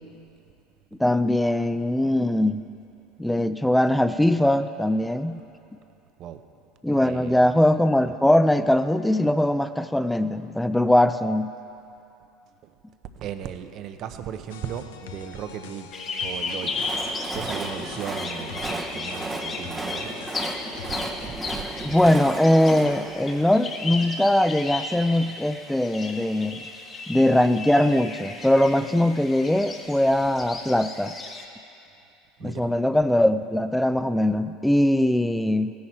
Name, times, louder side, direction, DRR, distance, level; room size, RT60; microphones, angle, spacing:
voice 1, 1.0-2.7 3.2-5.4 6.8-11.5 21.4-21.5 21.8-26.6 27.1-31.1 32.4-35.7, left 1 dB, 5° left, 12 dB, 0.5 m, -21 dB
voice 2, 7.0-7.4 12.6-12.7 13.2-15.9 16.2-17.0 17.3-20.2 20.8-22.0 32.4-32.7, right 9 dB, 55° right, 9 dB, 0.7 m, -37 dB
sound 1, 14.5-21.3, left 8 dB, 85° left, 0.6 m, -43 dB
sound 2, 15.9-31.5, left 3 dB, 35° left, 1.4 m, -35 dB
Train, 16.3-24.4, right 2 dB, 15° right, 0.9 m, -35 dB
16.0 x 10.5 x 4.4 m, 2.7 s
hypercardioid pair, 90°, 0 cm